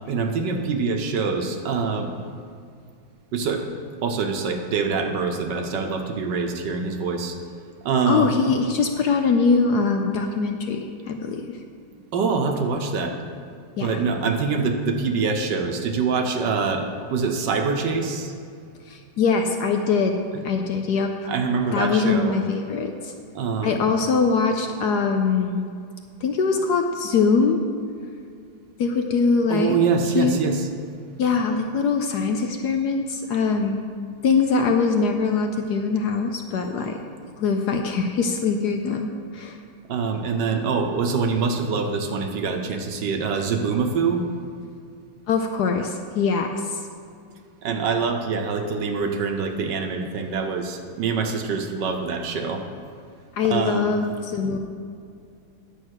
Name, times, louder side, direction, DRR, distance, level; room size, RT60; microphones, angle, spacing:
voice 1, 0.1-2.1 3.3-3.6 4.0-7.4 7.8-8.4 12.1-13.2 13.8-16.8 17.1-18.3 20.3-20.4 21.3-22.4 23.3-23.8 29.5-30.7 31.3-31.4 39.9-44.2 47.6-52.6 53.4-53.9, right 5 dB, 65° right, 5 dB, 1.4 m, -24 dB
voice 2, 8.1-11.5 13.8-14.0 18.9-20.1 20.4-21.3 21.7-23.1 23.6-25.6 26.2-27.6 28.8-29.8 30.1-30.4 31.2-33.9 34.2-37.0 37.4-39.1 39.3-39.6 45.3-46.8 53.4-54.6, left 5 dB, 65° left, 4 dB, 1.1 m, -22 dB
9.8 x 7.4 x 6.3 m, 2.3 s
omnidirectional pair, 2.2 m